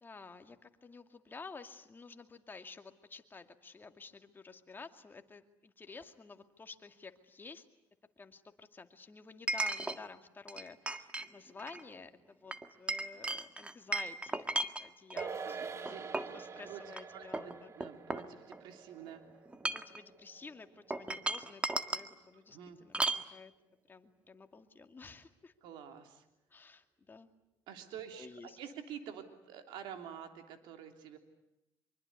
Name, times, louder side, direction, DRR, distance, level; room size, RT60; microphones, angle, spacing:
voice 1, 0.0-7.7 8.2-16.0 16.3-17.7 19.7-21.6 21.9-23.5 23.9-25.5 26.5-27.3 28.1-28.6, left 4 dB, 25° left, 7 dB, 2.4 m, -52 dB
Chink clink, 6.0-6.1 9.5-10.0 10.5-11.3 11.6-11.8 12.5-15.3 15.9-16.4 16.9-17.0 17.3-18.8 19.5-20.0 20.9-22.1 22.9-23.3, right 2 dB, 15° right, 1.8 m, -36 dB
sound 1, 15.2-21.8 22.1-22.2, right 5 dB, 35° right, 1.6 m, -46 dB
voice 2, 15.4-16.8 17.1-19.2 22.5-22.8 25.6-26.2 27.7-31.2, right 8 dB, 80° right, 6 dB, 3.3 m, -48 dB
25.0 x 24.0 x 9.7 m, 0.86 s
cardioid pair, 95°, 8 cm